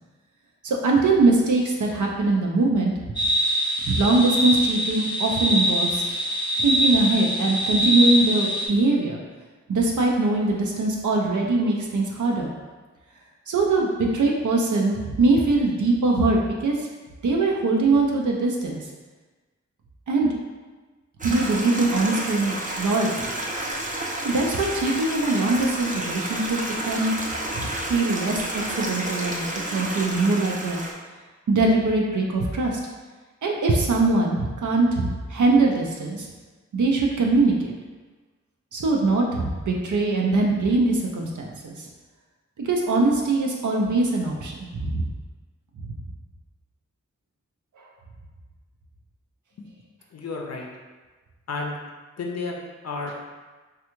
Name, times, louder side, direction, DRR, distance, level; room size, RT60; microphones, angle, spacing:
voice 1, 0.6-2.9 3.8-6.0 6.6-9.2 9.7-12.5 13.5-16.9 17.2-18.8 20.1-20.3 21.2-23.3 24.2-26.6 26.8-27.2 27.5-30.8 31.5-32.8 33.4-36.3 36.7-37.7 38.7-41.9 42.6-45.1 45.8-45.9 47.8-47.9, right 3 dB, 80° right, -1 dB, 0.5 m, -22 dB
sound 1, 3.2-8.7, equal, 15° left, 0.7 m, -24 dB
Stream, 21.2-30.9, right 1 dB, 25° right, 0.5 m, -31 dB
voice 2, 50.1-50.7 51.5-51.8 52.2-53.1, left 3 dB, 60° left, 1 dB, 0.5 m, -31 dB
3.3 x 2.3 x 2.9 m, 1.3 s
wide cardioid pair, 45°, 30 cm